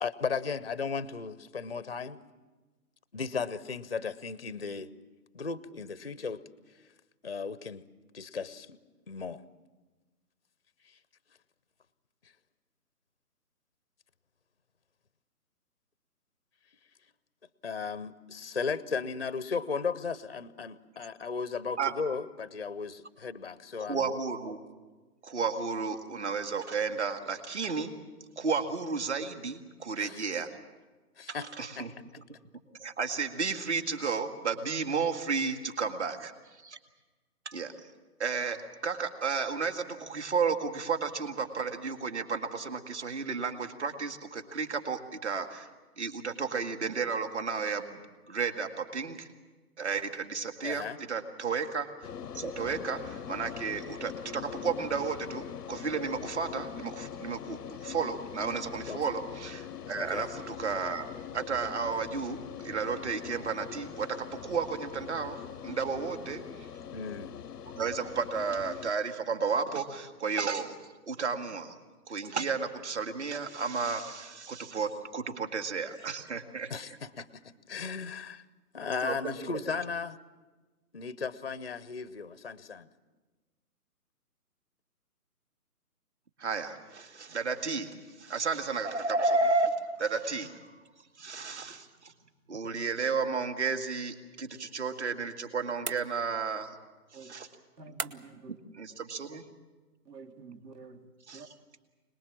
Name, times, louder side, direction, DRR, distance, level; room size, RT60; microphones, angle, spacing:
voice 1, 0.0-2.2 3.1-4.9 5.3-6.4 7.2-7.8 8.1-8.8 9.1-9.4 17.6-24.1 30.0-30.2 31.2-32.0 50.6-51.0 58.9-59.0 59.9-60.3 66.9-67.3 76.7-77.3 77.7-78.4 78.7-80.2 80.9-82.9, left 5 dB, 40° left, 16 dB, 0.6 m, -36 dB
voice 2, 23.9-24.6 25.2-27.9 28.4-30.5 31.3-31.9 32.8-36.3 36.6-36.8 37.5-37.7 38.2-38.6 38.8-45.7 46.0-48.0 48.3-49.3 49.8-51.9 52.3-66.4 67.8-70.8 71.1-71.8 72.1-76.7 79.0-79.3 86.4-90.6 91.2-92.1 92.5-96.7 97.1-97.5 98.7-99.4 101.3-101.5, right 5 dB, 45° right, 7 dB, 2.0 m, -32 dB
sound 1, 52.0-68.9, left 8 dB, 90° left, 0.8 m, -42 dB
sound 2, 95.8-96.6 98.0-98.5, right 6 dB, 65° right, 1.2 m, -39 dB
voice 3, 97.8-98.6 100.1-101.0 101.3-101.5, right 4 dB, 85° right, 5 dB, 3.1 m, -48 dB
26.0 x 20.0 x 7.4 m, 1.2 s
hypercardioid pair, 175°, 47 cm